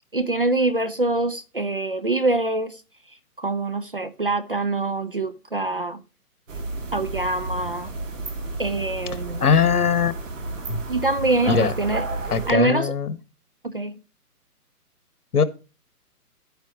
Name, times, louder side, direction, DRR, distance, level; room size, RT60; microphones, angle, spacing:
voice 1, 0.1-2.8 3.4-6.0 6.9-7.9 8.6-9.4 10.9-12.0 12.5-12.9 13.6-13.9, right 2 dB, 35° right, 0.5 m, -24 dB
sound 1, 6.5-12.5, right 2 dB, 55° right, 3.0 m, -31 dB
voice 2, 9.4-10.1 10.7-10.8 11.5-11.7 12.3-13.2 15.3-15.4, left 6 dB, 70° left, 1.6 m, -20 dB
12.0 x 9.1 x 3.0 m
hypercardioid pair, 170°, 46 cm